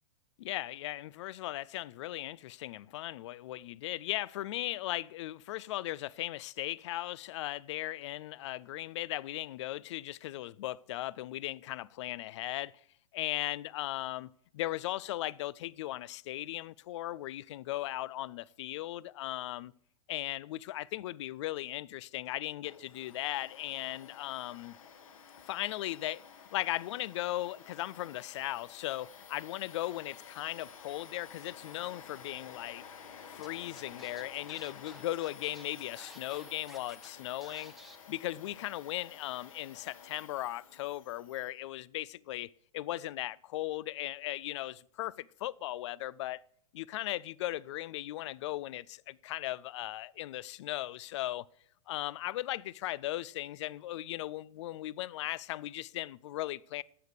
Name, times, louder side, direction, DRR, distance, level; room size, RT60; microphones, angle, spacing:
voice 1, 0.4-12.7 13.1-19.7 20.1-24.8 25.5-26.2 26.5-32.8 33.3-37.7 38.1-46.4 46.7-51.5 51.9-56.8, left 15 dB, 55° left, 0.5 m, -37 dB
Domestic sounds home sounds, 22.6-41.5, left 6 dB, 70° left, 2.1 m, -52 dB
Scratching (performance technique), 33.4-33.5 33.8-37.1 37.4-38.0, right 1 dB, ahead, 1.0 m, -53 dB
11.5 x 8.0 x 6.6 m
hypercardioid pair, 110°, 18 cm